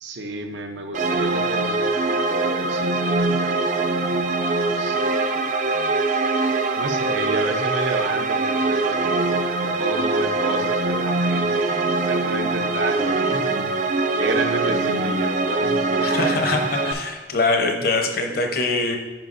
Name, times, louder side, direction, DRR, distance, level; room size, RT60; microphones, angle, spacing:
voice 1, 0.0-3.9 4.7-5.9 6.8-9.3 9.6-13.9 14.2-17.0 18.2-18.6, right 2 dB, 80° right, 6 dB, 0.6 m, -31 dB
sound 1, 0.9-16.9, right 3 dB, 45° right, 0.4 m, -23 dB
voice 2, 16.0-19.0, left 3 dB, 55° left, 3 dB, 0.8 m, -23 dB
8.9 x 5.5 x 2.5 m, 1.3 s
head